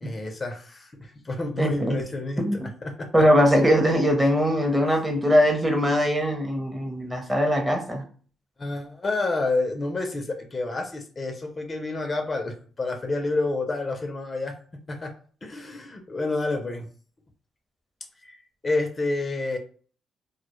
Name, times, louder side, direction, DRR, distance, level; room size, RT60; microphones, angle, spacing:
voice 1, 0.0-2.4 2.8-3.1 8.6-14.5 14.9-15.1 15.4-16.8 18.2-18.4 18.6-19.6, left 2 dB, 30° left, 4 dB, 0.4 m, -29 dB
voice 2, 1.6-2.0 2.4-2.7 3.1-8.0, equal, 15° right, 3 dB, 0.6 m, -21 dB
2.1 x 2.0 x 2.9 m, 0.43 s
cardioid pair, 90°, 0 cm